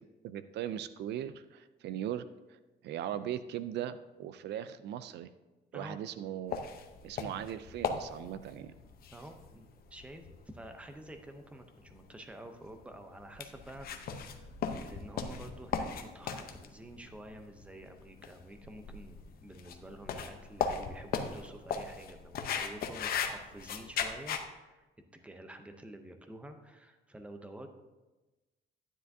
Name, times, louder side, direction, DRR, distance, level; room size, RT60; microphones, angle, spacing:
voice 1, 0.2-5.3 5.7-6.6 7.0-8.7, right 10 dB, 65° right, 13 dB, 0.4 m, -39 dB
sound 1, 6.5-24.4, left 6 dB, 55° left, 0.7 m, -38 dB
voice 2, 9.1-14.5 14.8-24.9 25.1-27.7, right 1 dB, 5° right, 6 dB, 0.6 m, -49 dB
12.0 x 9.9 x 2.7 m, 1.1 s
cardioid pair, 180°, 19 cm